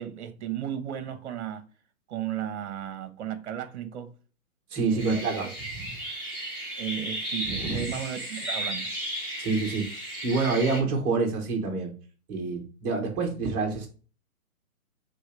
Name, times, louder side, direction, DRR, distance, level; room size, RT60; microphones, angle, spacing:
voice 1, 0.0-1.6 2.1-4.1 4.8-5.5 6.8-8.9, right 10 dB, 50° right, 0.7 m, -35 dB
voice 2, 4.7-5.5 5.8-5.9 7.4-7.9 9.4-9.9 10.2-11.9 12.3-13.9, right 4 dB, 10° right, 0.5 m, -27 dB
sound 1, 5.0-10.8, right 1 dB, 10° left, 0.8 m, -34 dB
3.3 x 2.7 x 4.6 m
hypercardioid pair, 140°, 43 cm